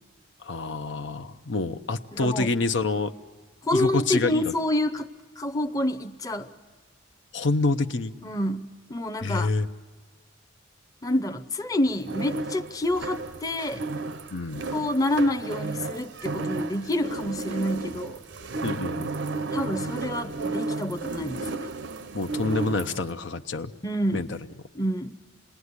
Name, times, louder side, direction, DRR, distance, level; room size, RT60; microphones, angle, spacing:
voice 1, 0.4-3.1 3.7-4.5 7.3-8.1 9.2-9.7 14.3-14.6 18.6-19.1 22.1-23.7 24.1-24.4, left 3 dB, 70° left, 8 dB, 0.8 m, -27 dB
voice 2, 2.1-2.5 3.6-5.1 5.4-6.5 8.2-9.5 11.0-13.8 14.7-18.2 19.5-21.7 23.8-24.3 24.7-25.2, left 1 dB, 20° left, 8 dB, 0.8 m, -28 dB
sound 1, 11.9-23.1, right 3 dB, 70° right, 0.7 m, -33 dB
27.5 x 20.0 x 9.7 m, 1.4 s
head